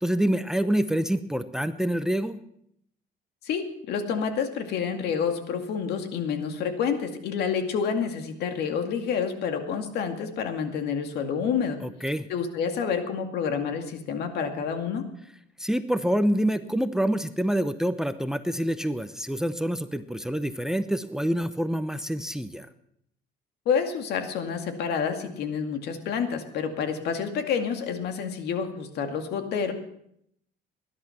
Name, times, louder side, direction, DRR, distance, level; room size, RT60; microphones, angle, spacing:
voice 1, 0.0-2.4 11.8-12.3 15.6-22.7, equal, 5° right, 12 dB, 0.8 m, -26 dB
voice 2, 3.4-11.8 12.3-15.0 23.7-29.7, left 6 dB, 75° left, 6 dB, 2.2 m, -28 dB
19.5 x 11.0 x 5.9 m, 0.72 s
cardioid pair, 110°, 17 cm